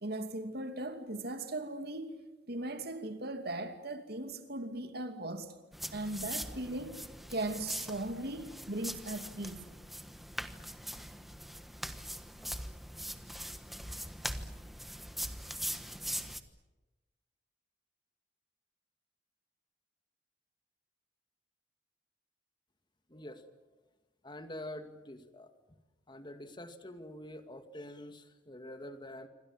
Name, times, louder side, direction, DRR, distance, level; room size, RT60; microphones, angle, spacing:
voice 1, 0.0-2.2 2.5-5.5 5.9-7.0 7.3-9.7, right 2 dB, 60° right, 2.8 m, -38 dB
sound 1, 5.7-16.4, equal, ahead, 1.3 m, -42 dB
voice 2, 23.1-23.6 24.2-25.5 26.1-29.3, left 1 dB, 25° left, 2.2 m, -46 dB
27.5 x 25.5 x 7.5 m
head